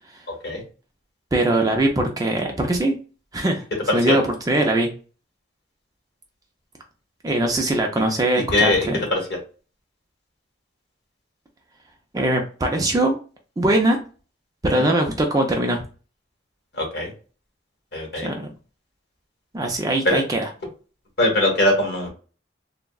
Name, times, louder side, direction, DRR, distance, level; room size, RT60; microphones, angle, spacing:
voice 1, 1.3-3.0 3.3-3.6 3.9-4.9 7.2-9.0 12.1-13.2 13.6-14.0 14.6-15.8 18.2-18.5 19.5-20.5, right 1 dB, 20° right, 3 dB, 0.4 m, -21 dB
voice 2, 8.5-9.2 14.8-14.9 16.8-17.1 17.9-18.3 20.0-20.2 21.2-22.1, left 1 dB, 55° left, 0 dB, 1.2 m, -21 dB
3.4 x 2.0 x 2.2 m, 0.37 s
head